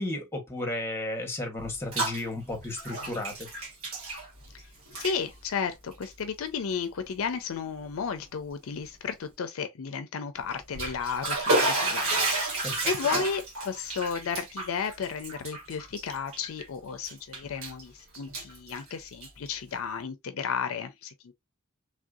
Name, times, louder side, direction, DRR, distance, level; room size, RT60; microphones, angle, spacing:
voice 1, 0.0-3.5 12.6-12.9, left 2 dB, 10° left, 1.0 m, -33 dB
Bathtub (filling or washing), 1.6-2.2 2.5-4.6 4.9-5.2 5.9-6.1 6.7-6.8 7.2-7.3 10.5-16.6 17.0-17.8 18.1-19.5, right 2 dB, 70° right, 1.5 m, -31 dB
voice 2, 4.9-21.3, left 6 dB, 70° left, 0.4 m, -33 dB
3.3 x 2.6 x 2.3 m
head